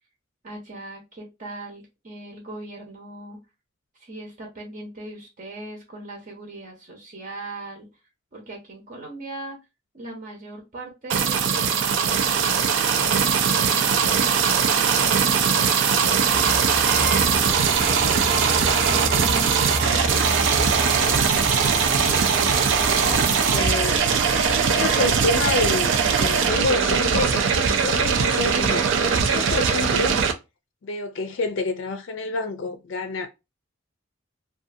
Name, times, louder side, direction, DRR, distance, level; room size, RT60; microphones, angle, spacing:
voice 1, 0.4-3.4 4.0-7.9 8.3-9.6 9.9-16.8 17.8-20.3, right 2 dB, 40° right, 0.8 m, -39 dB
sound 1, 11.1-30.3, right 6 dB, 65° right, 0.4 m, -21 dB
sound 2, 16.3-27.2, equal, 5° left, 0.5 m, -31 dB
voice 2, 22.3-24.0 24.6-30.2 30.8-33.3, left 3 dB, 65° left, 0.4 m, -28 dB
2.6 x 2.3 x 2.6 m
head